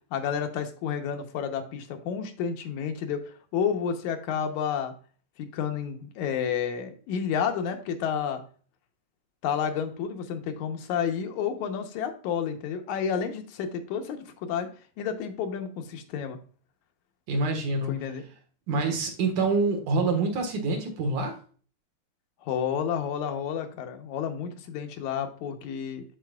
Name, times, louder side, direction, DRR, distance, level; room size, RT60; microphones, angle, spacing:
voice 1, 0.1-4.9 5.4-8.4 9.4-14.7 15.0-16.4 17.9-18.2 22.4-26.0, left 7 dB, 85° left, 5 dB, 2.2 m, -30 dB
voice 2, 17.3-17.9 18.7-21.3, right 3 dB, 85° right, 3 dB, 2.9 m, -26 dB
12.5 x 4.1 x 2.3 m, 0.41 s
omnidirectional pair, 3.3 m